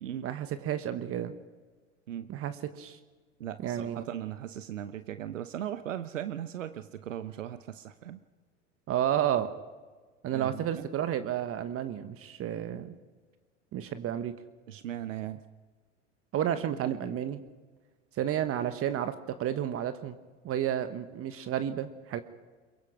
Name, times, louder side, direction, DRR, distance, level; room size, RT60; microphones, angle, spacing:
voice 1, 0.2-1.3 2.3-3.0 3.6-4.0 8.9-9.5 10.2-12.9 13.7-14.3 16.3-17.4 18.2-20.2 20.4-22.2, right 10 dB, 35° right, 11 dB, 1.2 m, -31 dB
voice 2, 3.4-8.2 10.3-10.9 14.7-15.4, right 11 dB, 85° right, 12 dB, 0.9 m, -38 dB
22.5 x 22.5 x 6.0 m, 1.4 s
hypercardioid pair, 90°, 37 cm